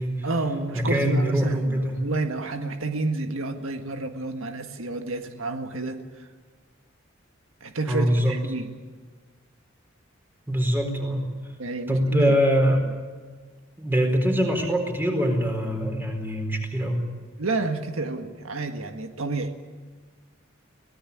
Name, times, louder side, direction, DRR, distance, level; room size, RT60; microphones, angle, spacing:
voice 1, 0.2-6.3 7.6-8.7 11.6-12.4 17.4-19.5, right 3 dB, 90° right, 6 dB, 1.7 m, -30 dB
voice 2, 0.7-2.0 7.9-8.4 10.5-11.3 11.9-12.8 13.8-17.0, equal, 10° right, 3 dB, 4.3 m, -23 dB
24.0 x 18.0 x 8.7 m, 1.5 s
head